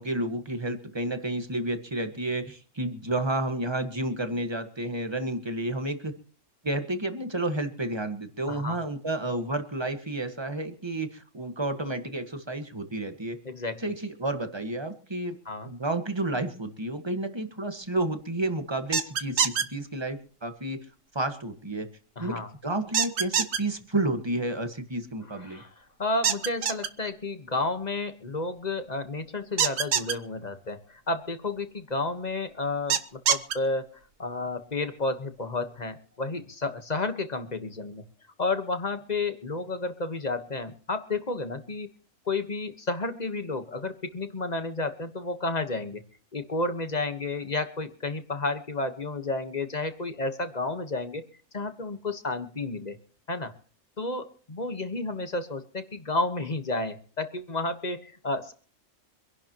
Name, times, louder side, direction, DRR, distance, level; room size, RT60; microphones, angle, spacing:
voice 1, 0.0-6.1 6.6-13.4 13.8-15.4 15.6-20.8 21.2-21.9 22.2-25.6, right 2 dB, 20° right, 7 dB, 1.6 m, -31 dB
voice 2, 8.5-8.8 13.4-13.9 15.4-15.7 22.2-22.5 25.4-25.7 26.0-33.9 34.2-38.0 38.4-41.9 42.3-46.0 46.3-51.3 51.5-53.0 53.3-53.5 54.0-58.5, left 3 dB, 35° left, 8 dB, 1.4 m, -31 dB
sound 1, 18.9-19.6 22.9-23.6 26.2-26.9 29.6-30.1 32.9-33.5, right 8 dB, 80° right, 1.4 m, -24 dB
26.0 x 11.5 x 3.0 m, 0.43 s
omnidirectional pair, 1.3 m